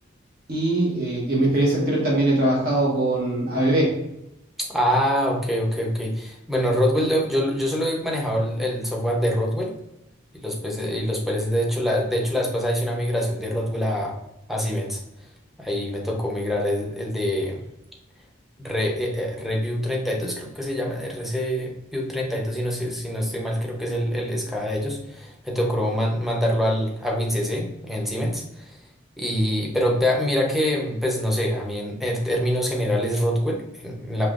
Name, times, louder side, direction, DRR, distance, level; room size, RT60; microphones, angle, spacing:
voice 1, 0.5-3.9, right 1 dB, 50° right, -3 dB, 1.1 m, -21 dB
voice 2, 4.7-9.7 10.4-14.1 14.5-15.0 15.6-17.6 18.6-28.8 29.2-34.3, equal, ahead, -2 dB, 0.7 m, -25 dB
5.5 x 2.8 x 2.4 m, 0.86 s
head